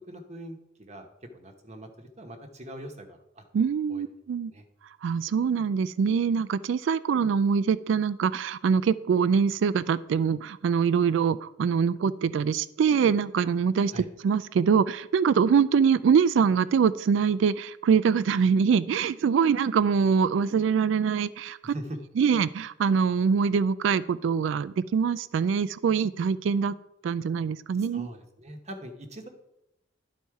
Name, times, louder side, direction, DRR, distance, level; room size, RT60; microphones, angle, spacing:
voice 1, 0.1-1.1 1.3-3.4 3.9-4.0 4.4-4.6 13.9-14.1 21.6-22.0 27.8-29.3, right 1 dB, 35° right, 0.9 m, -42 dB
voice 2, 3.5-4.5 5.0-21.7 22.2-26.8 27.0-28.1, right 6 dB, 70° right, 0.3 m, -24 dB
11.5 x 4.1 x 4.7 m
head